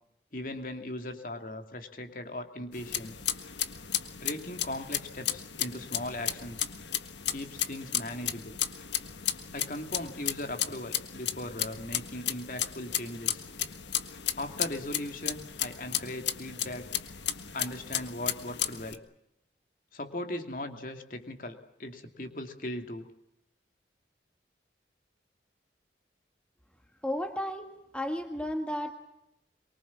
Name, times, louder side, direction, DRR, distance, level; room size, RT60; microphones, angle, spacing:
voice 1, 0.3-3.2 4.2-6.7 7.3-8.6 9.5-13.5 14.3-16.9 17.5-19.0 19.9-23.1, left 1 dB, 50° left, 5 dB, 2.6 m, -38 dB
sound 1, 2.7-19.0, left 11 dB, 85° left, 1.6 m, -34 dB
voice 2, 27.0-27.7 27.9-28.9, left 1 dB, 5° left, 5 dB, 1.7 m, -33 dB
24.0 x 23.5 x 7.3 m, 0.84 s
head